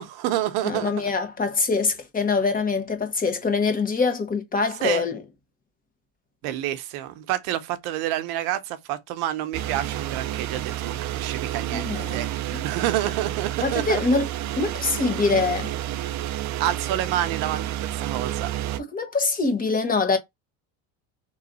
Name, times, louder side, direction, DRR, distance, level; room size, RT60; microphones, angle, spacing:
voice 1, 0.0-1.1 4.8-5.0 6.4-14.0 16.6-18.5, right 13 dB, 80° right, 0.9 m, -28 dB
voice 2, 0.6-5.2 11.7-12.2 12.5-12.7 13.6-14.3 14.6-15.7 18.8-20.2, left 4 dB, 20° left, 1.2 m, -24 dB
sound 1, 9.5-18.8, right 12 dB, 50° right, 0.6 m, -30 dB
3.9 x 3.1 x 3.9 m
cardioid pair, 130°, 38 cm